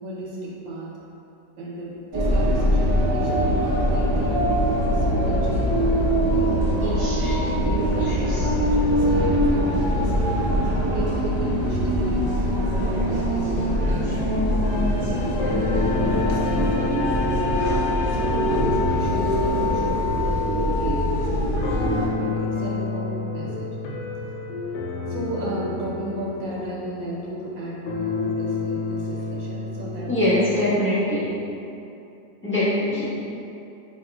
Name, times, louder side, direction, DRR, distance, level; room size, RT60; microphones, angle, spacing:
voice 1, 0.0-0.9 1.6-4.4 4.9-7.2 7.5-10.2 10.9-14.3 15.6-17.3 17.7-21.4 22.2-23.7 25.1-30.1 30.5-30.8, right 1 dB, 85° right, -5 dB, 1.5 m, -34 dB
sound 1, 2.1-22.1, equal, 30° right, 0.4 m, -22 dB
sound 2, 14.6-27.6 27.9-30.7, left 3 dB, 75° left, 1.2 m, -29 dB
voice 2, 30.1-31.3 32.4-33.1, left 1 dB, 10° left, -13 dB, 1.0 m, -22 dB
4.2 x 4.0 x 2.3 m, 2.8 s
omnidirectional pair, 2.0 m